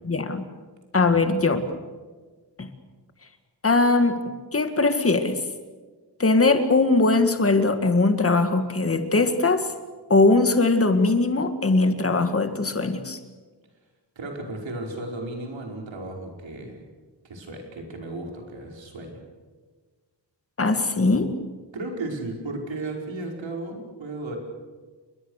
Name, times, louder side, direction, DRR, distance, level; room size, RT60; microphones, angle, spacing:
voice 1, 0.1-0.5 0.9-1.6 2.6-2.7 3.6-4.2 4.5-5.4 6.2-9.7 10.1-13.2 20.6-21.4, left 3 dB, 30° left, 8 dB, 1.9 m, -20 dB
voice 2, 14.2-16.8 17.2-19.2 21.7-24.4, right 2 dB, 80° right, 1 dB, 5.4 m, -35 dB
29.5 x 22.0 x 6.6 m, 1.4 s
wide cardioid pair, 175°, 45 cm